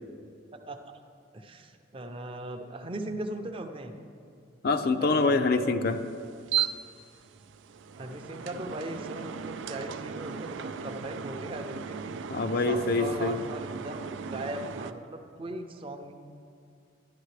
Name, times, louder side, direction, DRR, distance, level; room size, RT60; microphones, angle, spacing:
voice 1, 1.3-3.9 5.0-5.4 8.0-12.3 12.6-16.1, right 1 dB, 30° right, 6 dB, 0.6 m, -38 dB
voice 2, 4.6-6.0 12.3-13.4, left 3 dB, 55° left, 8 dB, 0.5 m, -25 dB
sound 1, 5.9-14.9, right 7 dB, 85° right, 0.4 m, -37 dB
11.5 x 11.5 x 3.3 m, 2.4 s
head